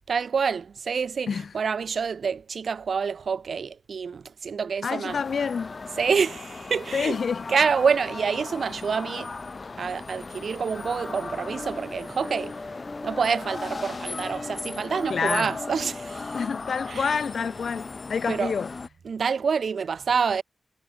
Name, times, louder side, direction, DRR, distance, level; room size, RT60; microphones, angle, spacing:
voice 1, 0.1-5.2 6.0-7.2 7.5-9.3 9.8-12.7 13.0-16.4 16.9-17.2 18.3-18.5 19.1-20.4, right 6 dB, 80° right, 1.7 m, -27 dB
voice 2, 4.8-5.7 6.9-7.4 15.1-15.5 16.3-18.7, left 6 dB, 80° left, 2.0 m, -28 dB
sound 1, 5.1-18.9, left 4 dB, 50° left, 1.7 m, -38 dB
sound 2, 11.0-16.5, left 2 dB, 30° left, 2.1 m, -40 dB
cardioid pair, 65°, 0 cm